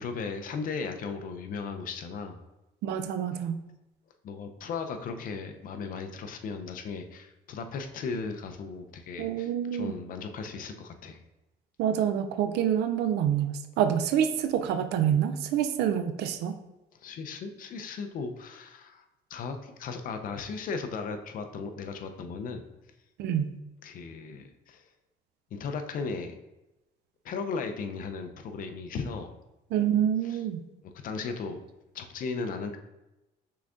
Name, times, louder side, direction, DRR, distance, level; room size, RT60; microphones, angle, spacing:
voice 1, 0.0-2.4 4.2-11.2 17.0-19.0 19.3-22.7 23.8-24.8 25.5-26.3 27.2-29.3 30.2-30.4 31.0-31.6 31.9-32.8, left 5 dB, 55° left, 7 dB, 0.5 m, -36 dB
voice 2, 2.8-3.6 9.2-9.9 11.8-16.6 23.2-23.5 29.7-30.7, right 9 dB, 80° right, 8 dB, 0.5 m, -27 dB
5.6 x 3.8 x 2.4 m, 0.98 s
cardioid pair, 110°, 17 cm